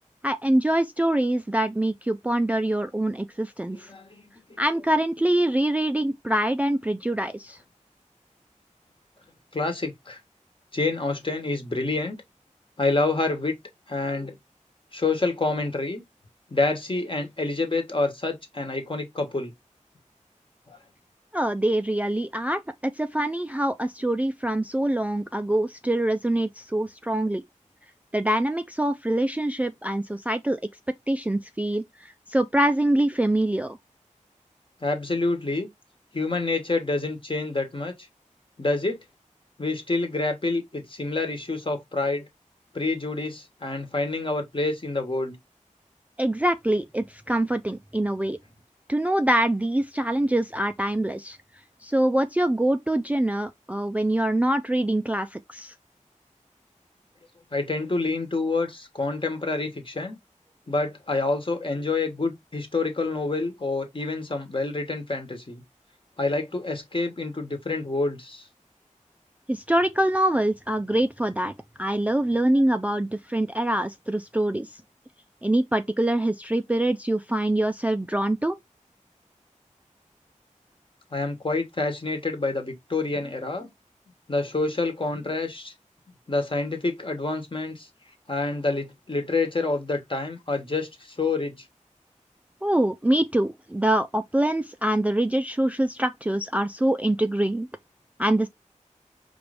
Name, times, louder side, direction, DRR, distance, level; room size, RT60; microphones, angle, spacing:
voice 1, 0.2-3.9 4.6-7.6 21.3-27.4 28.1-30.6 31.1-33.8 46.2-48.4 48.9-51.4 51.8-55.7 69.5-71.5 71.8-74.8 75.4-78.6 92.6-97.7 98.2-98.5, right 1 dB, 10° right, 0.3 m, -24 dB
voice 2, 3.7-4.2 4.5-4.6 9.5-10.2 10.7-12.2 12.8-13.5 13.9-14.4 14.9-16.0 16.5-19.5 20.7-20.8 34.8-35.7 36.1-38.1 38.6-39.0 39.6-42.2 42.7-45.4 57.5-60.2 60.7-65.6 66.2-68.5 81.1-83.7 84.3-85.7 86.3-87.9 88.3-91.7, left 3 dB, 40° left, 1.2 m, -27 dB
4.7 x 2.5 x 3.2 m
wide cardioid pair, 55°, 13 cm